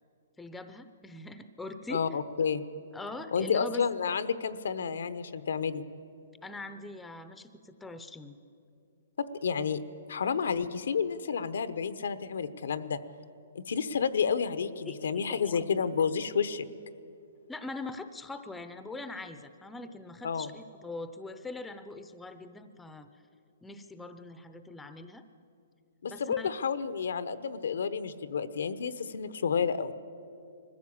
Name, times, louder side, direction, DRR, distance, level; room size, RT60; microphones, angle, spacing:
voice 1, 0.4-2.1 2.9-3.8 6.4-8.4 14.9-15.8 17.5-23.1 23.6-25.2 26.1-26.5, left 2 dB, 5° left, 10 dB, 0.7 m, -42 dB
voice 2, 1.9-2.6 3.3-5.8 9.2-9.8 10.1-13.0 13.5-16.7 20.2-20.5 26.0-29.9, left 6 dB, 80° left, 13 dB, 1.0 m, -30 dB
20.5 x 15.0 x 8.7 m, 2.6 s
hypercardioid pair, 155°, 0 cm